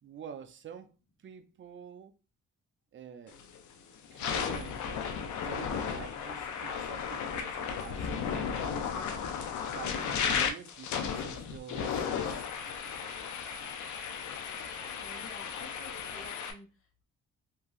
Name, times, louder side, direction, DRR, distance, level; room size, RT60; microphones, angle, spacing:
voice 1, 0.0-2.1 2.9-3.5 4.1-4.8 5.4-9.0 9.7-12.5, right 8 dB, 40° right, 0.5 m, -47 dB
sound 1, 3.3-3.6 4.0-16.5, left 7 dB, 75° left, 0.6 m, -34 dB
voice 2, 15.0-17.0, left 2 dB, 45° left, 1.1 m, -50 dB
3.0 x 2.7 x 2.4 m
cardioid pair, 90°, 30 cm